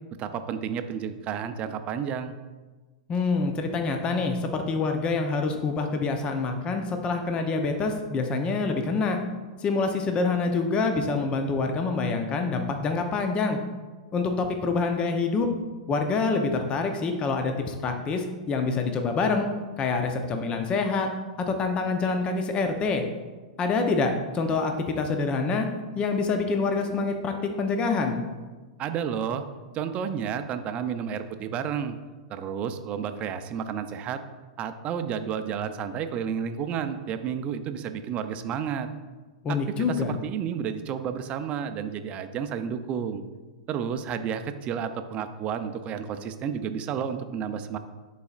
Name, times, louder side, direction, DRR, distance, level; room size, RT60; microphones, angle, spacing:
voice 1, 0.2-2.4 28.8-29.4 29.7-32.0 32.3-34.2 34.6-38.9 39.5-39.6 39.9-43.2 43.7-47.8, right 8 dB, 35° right, 9 dB, 0.5 m, -31 dB
voice 2, 3.1-9.2 9.6-13.6 14.1-15.5 15.9-19.5 19.8-21.1 21.5-23.0 23.6-25.7 25.9-28.2 39.4-40.1, left 4 dB, 30° left, 5 dB, 0.7 m, -26 dB
10.5 x 4.2 x 2.5 m, 1.3 s
hypercardioid pair, 105°, 4 cm